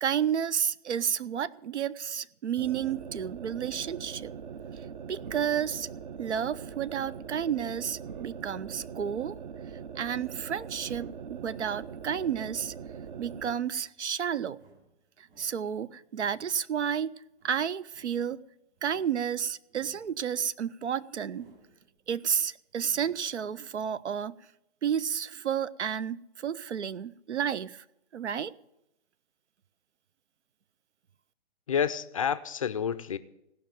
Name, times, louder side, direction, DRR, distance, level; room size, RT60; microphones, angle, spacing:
voice 1, 0.0-4.3 5.1-5.9 6.2-9.4 10.0-12.7 13.2-14.6 15.4-17.1 17.4-18.4 18.8-21.5 22.1-24.4 24.8-27.8 28.1-28.5, right 8 dB, 80° right, 19 dB, 0.6 m, -31 dB
sound 1, 2.6-13.6, right 7 dB, 45° right, 0.7 m, -42 dB
sound 2, 13.0-23.8, right 2 dB, 60° right, 6.1 m, -63 dB
voice 2, 31.7-33.2, left 7 dB, 30° left, 12 dB, 0.4 m, -29 dB
17.0 x 5.6 x 9.0 m, 0.85 s
hypercardioid pair, 140°, 34 cm